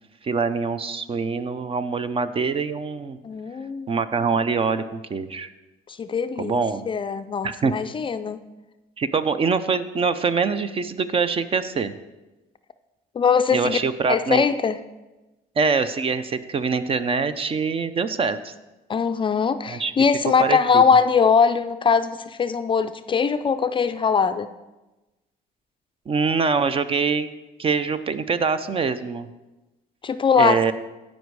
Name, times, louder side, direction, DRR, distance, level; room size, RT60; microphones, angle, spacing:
voice 1, 0.2-3.2 3.9-5.5 6.4-6.9 7.4-7.7 9.0-11.9 13.5-14.4 15.6-18.5 19.7-19.9 20.4-20.8 26.1-27.3 27.6-29.3 30.4-30.7, right 5 dB, 35° right, 12 dB, 0.6 m, -24 dB
voice 2, 3.2-3.9 5.9-8.4 13.2-13.8 14.1-14.8 18.9-24.5 30.0-30.6, left 6 dB, 30° left, 10 dB, 0.4 m, -21 dB
15.0 x 5.3 x 4.7 m, 1.1 s
cardioid pair, 110°, 17 cm